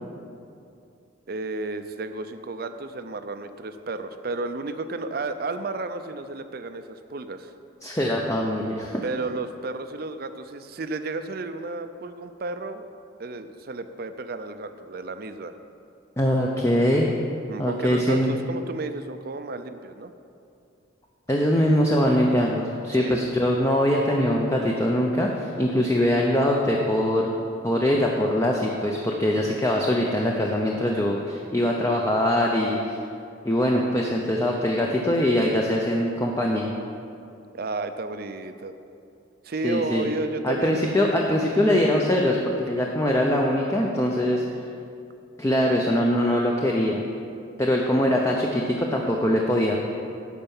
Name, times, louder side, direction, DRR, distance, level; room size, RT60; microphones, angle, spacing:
voice 1, 1.3-7.5 9.0-12.9 13.2-15.6 16.7-16.9 17.5-20.1 22.9-23.2 37.5-38.7 39.4-40.8, right 3 dB, 50° right, 10 dB, 0.5 m, -32 dB
voice 2, 7.8-9.0 16.2-17.1 17.6-18.4 21.3-27.3 27.6-33.0 33.4-36.7 39.6-40.1 40.4-44.5 45.4-47.0 47.6-49.8, left 1 dB, 15° left, -1 dB, 0.6 m, -22 dB
11.0 x 4.6 x 7.0 m, 2.6 s
head